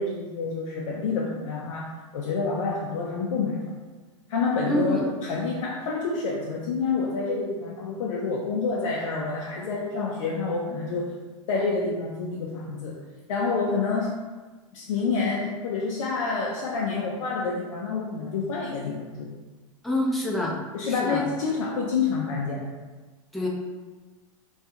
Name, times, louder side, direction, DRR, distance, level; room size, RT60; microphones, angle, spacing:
voice 1, 0.0-3.6 4.3-11.2 11.5-13.0 13.3-14.1 14.7-19.3 20.7-22.7, left 4 dB, 70° left, -3 dB, 0.4 m, -28 dB
voice 2, 4.7-5.0 19.8-20.6 20.9-21.2 23.3-23.5, left 1 dB, ahead, -3 dB, 0.4 m, -26 dB
2.3 x 2.3 x 2.7 m, 1.3 s
hypercardioid pair, 95°, 17 cm